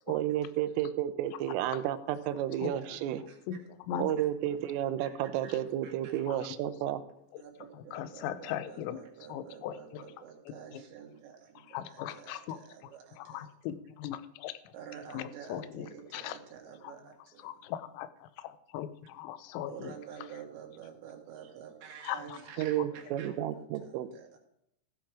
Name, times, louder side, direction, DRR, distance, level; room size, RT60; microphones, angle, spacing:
voice 1, 0.1-3.2 4.0-7.0 22.6-24.1, right 12 dB, 85° right, 11 dB, 3.4 m, -32 dB
voice 2, 2.5-3.4 4.2-4.3 5.0-5.1 5.4-6.1 7.4-13.5 14.7-17.6 19.7-23.5 23.8-24.4, right 8 dB, 70° right, 1 dB, 3.9 m, -49 dB
voice 3, 3.5-4.1 6.3-6.4 7.3-7.4 7.7-9.0 9.3-10.0 11.7-12.6 13.2-14.7 15.1-15.9 16.1-16.4 16.8-16.9 17.4-19.9 22.0-22.4 22.8-22.9, left 11 dB, 90° left, 13 dB, 3.3 m, -39 dB
15.0 x 7.6 x 4.7 m, 0.78 s
omnidirectional pair, 5.7 m